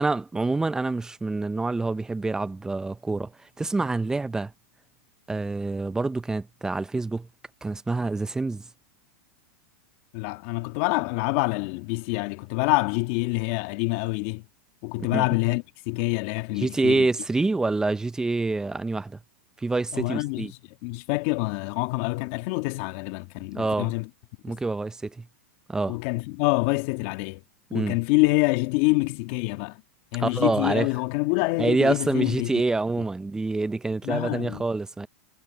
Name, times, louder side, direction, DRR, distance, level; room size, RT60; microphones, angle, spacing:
voice 1, 0.0-3.3 3.6-4.5 5.3-7.3 7.6-8.7 15.0-15.3 16.5-19.2 19.6-20.5 23.5-23.9 24.4-25.3 25.7-26.0 27.7-28.0 30.2-30.9 31.6-35.1, right 3 dB, 10° right, 0.5 m, -26 dB
voice 2, 10.1-14.4 14.8-17.1 19.9-20.5 20.8-24.1 24.5-24.6 25.9-27.4 27.7-29.8 30.1-32.5 34.0-34.6, left 24 dB, 55° left, 1.7 m, -26 dB
hypercardioid pair, 125°, 8 cm